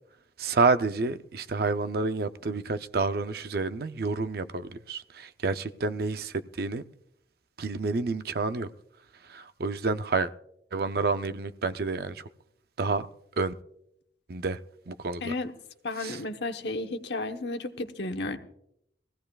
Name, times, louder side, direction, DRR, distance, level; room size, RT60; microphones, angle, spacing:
voice 1, 0.4-6.8 7.6-8.7 9.3-10.3 10.7-12.2 12.8-13.1 13.4-13.5 14.3-14.6 14.9-15.3 16.0-16.2, right 3 dB, 60° right, 0.5 m, -29 dB
voice 2, 15.2-15.6 15.8-18.4, left 2 dB, 75° left, 1.0 m, -33 dB
21.5 x 16.0 x 2.3 m
head